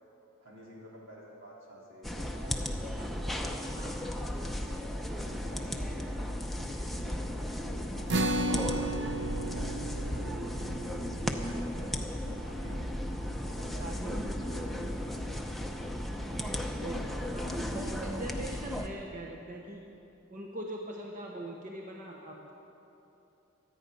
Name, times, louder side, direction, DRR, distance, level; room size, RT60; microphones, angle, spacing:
voice 1, 0.4-3.8 4.2-4.6 5.0-11.2 11.7-13.0 13.2-15.2 17.1-17.3, right 1 dB, 75° right, -5 dB, 3.8 m, -50 dB
sound 1, 2.0-18.9, left 1 dB, ahead, 0.6 m, -35 dB
voice 2, 3.7-4.2 13.8-14.6 16.6-19.8 20.3-22.5, right 1 dB, 40° right, 0 dB, 0.9 m, -42 dB
sound 2, 8.1-14.7, right 1 dB, 60° right, 0.6 m, -36 dB
24.0 x 9.0 x 5.3 m, 3.0 s
head